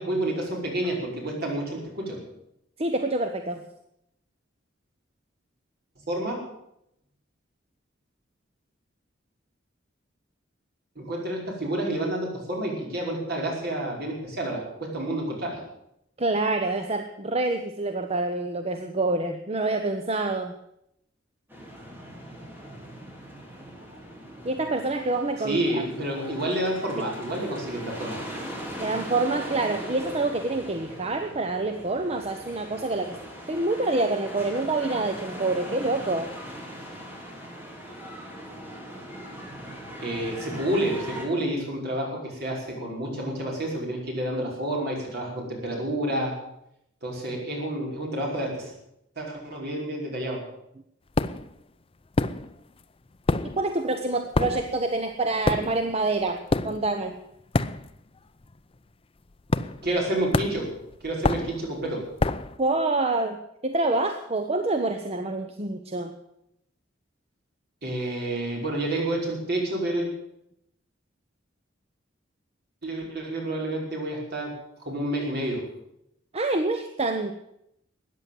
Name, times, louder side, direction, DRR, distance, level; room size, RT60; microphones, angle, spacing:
voice 1, 0.0-2.2 6.1-6.5 11.0-15.6 25.4-28.2 40.0-46.3 47.0-48.7 49.2-50.4 59.8-60.8 61.0-62.1 67.8-70.1 72.8-74.6 74.8-75.7, right 1 dB, 55° right, -1 dB, 5.4 m, -29 dB
voice 2, 2.8-3.6 16.2-20.6 24.4-25.9 28.8-33.2 33.5-36.3 53.6-57.2 62.6-63.4 63.6-66.1 76.3-77.3, right 2 dB, 35° right, 6 dB, 1.0 m, -27 dB
sound 1, 21.5-41.3, equal, 10° right, 3.5 m, -40 dB
sound 2, 51.1-51.5 52.1-52.8 53.1-58.2 58.4-58.7 59.5-60.0 60.3-62.6, left 2 dB, 30° left, 0.6 m, -27 dB
14.0 x 9.7 x 9.2 m, 0.79 s
head